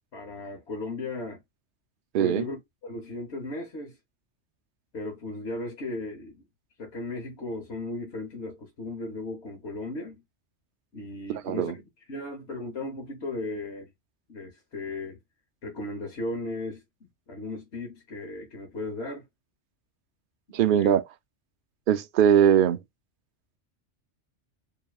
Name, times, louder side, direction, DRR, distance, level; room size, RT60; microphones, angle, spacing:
voice 1, 0.1-1.4 2.2-4.0 4.9-6.4 6.8-10.2 10.9-13.9 14.3-15.2 15.6-16.8 17.3-19.3 20.5-20.9, left 2 dB, 65° left, 1.4 m, -36 dB
voice 2, 2.1-2.5 11.3-11.7 20.5-21.0 21.9-22.8, right 9 dB, 60° right, 0.6 m, -21 dB
4.8 x 3.0 x 2.3 m
omnidirectional pair, 1.3 m